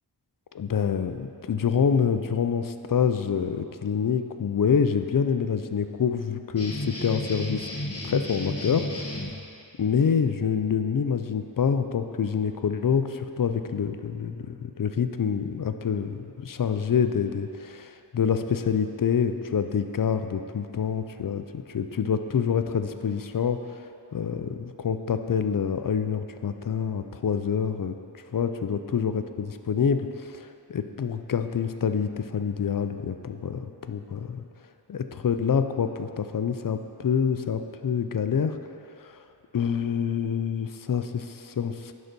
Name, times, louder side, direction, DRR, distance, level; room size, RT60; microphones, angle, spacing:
voice 1, 0.5-7.7 8.0-9.2 9.8-27.9 28.3-34.4 34.9-38.6 39.0-39.2 39.5-41.9, left 7 dB, 50° left, 8 dB, 0.5 m, -27 dB
sound 1, 6.6-9.3, left 1 dB, 35° left, 1.1 m, -33 dB
10.5 x 4.1 x 5.2 m, 2.6 s
wide cardioid pair, 55°, 42 cm